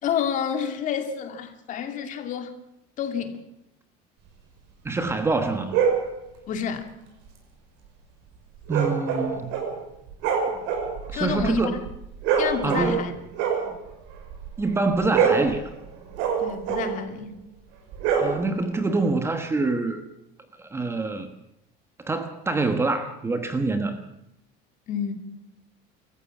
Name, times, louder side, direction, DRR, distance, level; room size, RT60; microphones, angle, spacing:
voice 1, 0.0-2.5 3.0-3.4 6.5-6.9 11.1-11.7 12.4-13.1 16.4-17.3 24.9-25.1, left 8 dB, 40° left, 2.5 m, -29 dB
voice 2, 4.8-5.8 8.7-9.5 11.1-11.9 12.6-13.1 14.6-15.6 18.2-20.0 20.6-21.3 22.0-24.0, right 3 dB, 10° right, 1.2 m, -25 dB
sound 1, 5.7-6.1 8.7-9.8 10.1-13.1 13.3-14.6 14.9-17.0 17.9-18.7, right 7 dB, 70° right, 6.0 m, -25 dB
26.0 x 14.5 x 7.3 m
cardioid pair, 165°, 20 cm